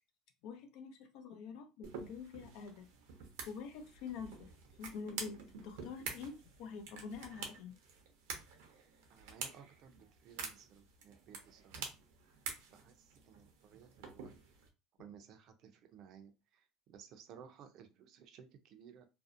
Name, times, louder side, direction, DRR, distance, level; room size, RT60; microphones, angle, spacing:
voice 1, 0.4-2.9 3.5-4.5 4.8-5.4 5.6-7.7, left 6 dB, 70° left, 0.5 m, -46 dB
sound 1, 1.8-14.7, right 5 dB, 85° right, 0.7 m, -48 dB
voice 2, 9.1-11.9 12.7-14.3 15.0-19.1, right 7 dB, 55° right, 0.5 m, -58 dB
2.6 x 2.0 x 2.5 m
supercardioid pair, 115°, 0 cm